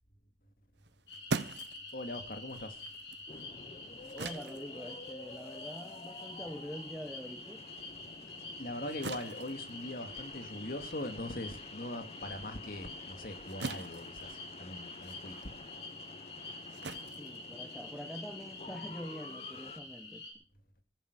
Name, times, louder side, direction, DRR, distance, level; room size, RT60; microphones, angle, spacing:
sound 1, 0.7-7.5 7.9-18.1, right 3 dB, 70° right, 1.2 m, -44 dB
sound 2, 1.1-20.3, left 3 dB, 75° left, 5.6 m, -47 dB
voice 1, 1.9-2.8 8.6-15.5, left 1 dB, 50° left, 2.4 m, -41 dB
sound 3, 3.3-19.8, left 3 dB, 35° left, 0.8 m, -51 dB
voice 2, 4.1-7.6 8.2-8.3 16.7-16.8 17.2-20.3, equal, ahead, 1.1 m, -45 dB
15.0 x 15.0 x 6.2 m
head